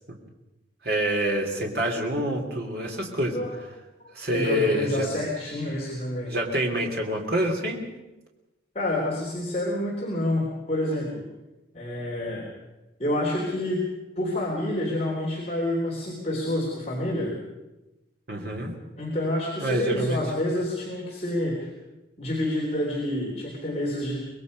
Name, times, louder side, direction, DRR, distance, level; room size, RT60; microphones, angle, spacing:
voice 1, 0.8-3.4 4.1-5.1 5.7-5.8 6.3-7.8 18.3-18.7 19.6-20.2, equal, 55° right, 0 dB, 3.2 m, -26 dB
voice 2, 4.0-6.4 8.8-11.2 11.7-12.5 13.0-13.9 14.2-17.4 19.0-21.7 22.2-24.2, left 1 dB, 35° left, -4 dB, 3.5 m, -28 dB
25.0 x 21.0 x 5.4 m, 1.0 s
head